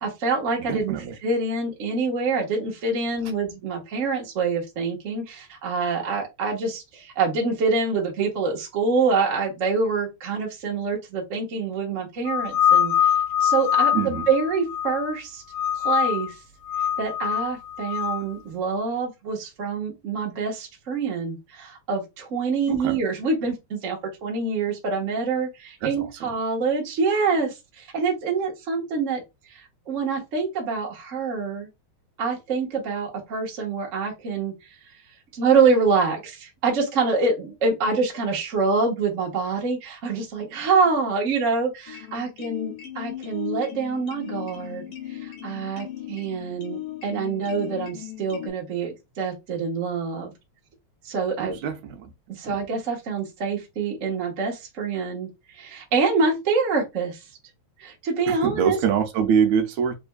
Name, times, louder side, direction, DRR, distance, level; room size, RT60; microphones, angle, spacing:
voice 1, 0.0-12.9 13.4-15.4 15.8-16.3 17.0-29.2 29.5-29.6 29.9-31.7 32.2-34.5 35.3-44.8 45.1-50.3 51.0-51.6 52.3-55.3 55.5-57.2 57.8-58.8, right 4 dB, 45° right, 1.0 m, -26 dB
voice 2, 0.7-1.1 13.9-14.3 22.7-23.0 25.8-26.1 51.4-52.1 52.4-52.5 58.3-59.9, right 7 dB, 80° right, 1.9 m, -24 dB
sound 1, 12.3-15.2 15.5-16.3 16.7-18.2, left 9 dB, 85° left, 1.2 m, -23 dB
sound 2, 41.9-48.5, left 13 dB, 65° left, 1.7 m, -37 dB
4.3 x 3.4 x 2.2 m
omnidirectional pair, 3.3 m